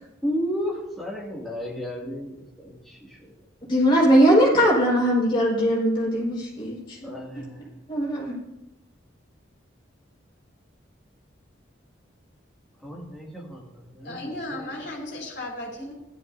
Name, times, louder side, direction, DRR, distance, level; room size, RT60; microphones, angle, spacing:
voice 1, 0.2-3.3 7.0-7.7 12.8-14.9, equal, ahead, -4 dB, 2.3 m, -33 dB
voice 2, 3.7-7.4 7.9-8.3, equal, 25° left, -5 dB, 5.0 m, -20 dB
voice 3, 14.0-15.9, left 1 dB, 60° left, -2 dB, 3.5 m, -35 dB
15.5 x 12.0 x 2.7 m, 0.92 s
head